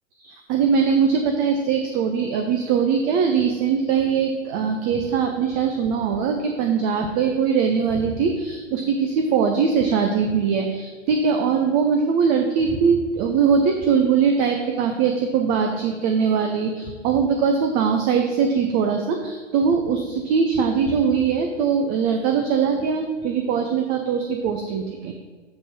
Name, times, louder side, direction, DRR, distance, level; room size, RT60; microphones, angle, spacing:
voice 1, 0.2-25.1, right 6 dB, 20° right, 4 dB, 0.4 m, -21 dB
7.4 x 4.2 x 6.0 m, 1.5 s
hypercardioid pair, 125°, 38 cm